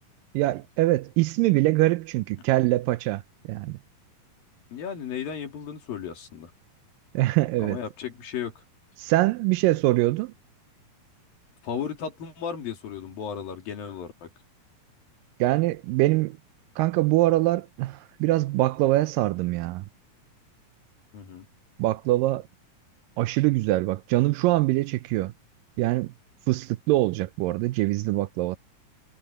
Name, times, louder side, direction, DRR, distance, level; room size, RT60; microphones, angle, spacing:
voice 1, 0.3-3.2 3.5-3.8 7.1-7.8 9.0-10.3 15.4-16.4 16.8-19.9 21.8-22.5 23.2-25.3 25.8-26.1 26.5-28.6, right 17 dB, 80° right, 2.2 m, -23 dB
voice 2, 4.7-6.5 7.6-8.6 11.6-14.3 21.1-21.5, left 7 dB, 75° left, 4.7 m, -35 dB
omnidirectional pair, 4.1 m